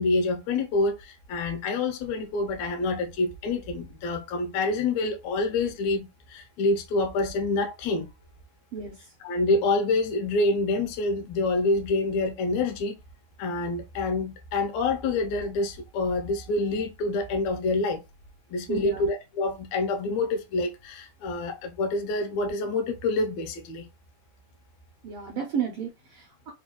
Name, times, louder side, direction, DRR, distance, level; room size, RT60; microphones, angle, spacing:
voice 1, 0.0-8.1 9.2-13.0 13.4-18.0 18.5-23.9, left 3 dB, 75° left, 2.0 m, -27 dB
voice 2, 18.7-19.0 25.0-26.5, right 7 dB, 80° right, 1.3 m, -32 dB
4.7 x 2.3 x 2.9 m
omnidirectional pair, 3.5 m